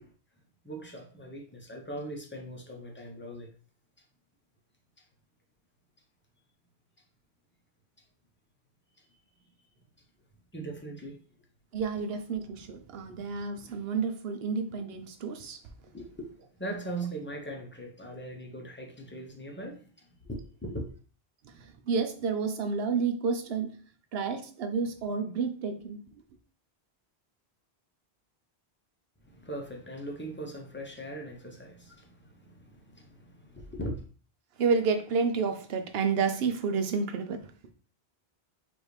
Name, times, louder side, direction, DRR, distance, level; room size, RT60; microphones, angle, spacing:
voice 1, 0.6-3.5 10.5-11.2 15.9-16.3 16.6-20.9 29.2-34.0, right 1 dB, 10° left, 0.7 m, -40 dB
voice 2, 11.7-15.6 21.6-23.8 24.1-26.0 34.6-37.4, right 5 dB, 70° right, 0.9 m, -30 dB
5.0 x 2.6 x 3.2 m
omnidirectional pair, 1.1 m